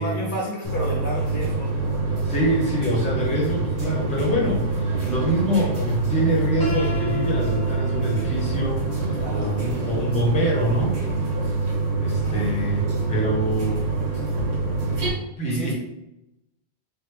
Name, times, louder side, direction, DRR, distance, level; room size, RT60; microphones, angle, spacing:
voice 1, 0.0-2.2 9.1-9.8 12.2-12.7 15.5-15.7, equal, 55° left, -3 dB, 0.7 m, -32 dB
sound 1, 0.6-15.1, right 3 dB, 75° right, 1.5 m, -25 dB
voice 2, 2.2-11.0 12.0-13.8 15.4-15.7, equal, 10° left, -3 dB, 0.6 m, -25 dB
Piano, 6.6-12.5, left 2 dB, 20° right, 1.2 m, -36 dB
3.2 x 2.1 x 3.2 m, 0.86 s
omnidirectional pair, 1.1 m